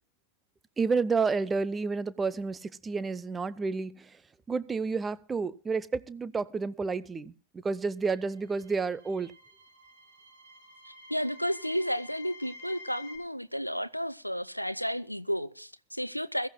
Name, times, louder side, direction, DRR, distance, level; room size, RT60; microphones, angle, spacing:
voice 1, 0.8-4.2 4.5-9.3, right 4 dB, 15° right, 0.7 m, -30 dB
sound 1, 8.3-13.2, left 2 dB, 60° right, 4.4 m, -50 dB
voice 2, 10.9-16.5, equal, 90° left, 0.5 m, -32 dB
22.5 x 14.5 x 2.2 m
figure-of-eight pair, 90°, 0 cm